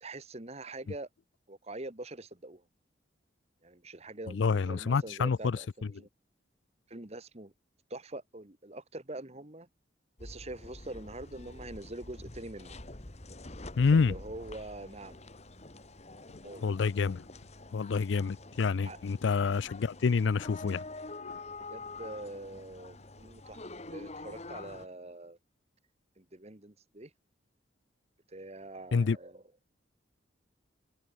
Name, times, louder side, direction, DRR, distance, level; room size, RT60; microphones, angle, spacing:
voice 1, 0.0-1.1 1.5-2.6 3.6-6.1 6.9-7.5 7.9-9.7 10.2-12.8 13.9-15.2 16.4-16.6 18.8-19.0 21.7-23.6 23.9-25.4 26.2-27.1 28.3-29.4, right 2 dB, 35° right, 1.6 m, -44 dB
voice 2, 4.3-5.9 13.8-14.2 16.6-17.2 17.7-20.8 21.2-21.4 28.9-29.2, left 5 dB, 80° left, 0.4 m, -28 dB
sound 1, 10.2-24.9, left 2 dB, 35° left, 2.0 m, -47 dB
head